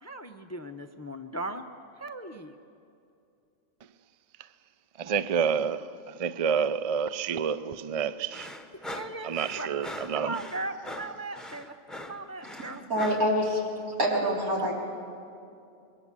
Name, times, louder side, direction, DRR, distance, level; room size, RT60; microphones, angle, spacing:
voice 1, 0.0-1.6 2.0-2.6 8.7-9.7 10.1-12.8, right 2 dB, 15° left, 0.6 m, -38 dB
voice 2, 5.0-5.9 6.2-8.5 9.2-10.4, right 7 dB, 55° right, 0.4 m, -28 dB
sound 1, 8.3-13.3, left 1 dB, ahead, 0.9 m, -42 dB
voice 3, 12.9-13.6 14.0-14.7, equal, 85° right, 4.2 m, -25 dB
26.0 x 22.0 x 7.5 m
omnidirectional pair, 1.5 m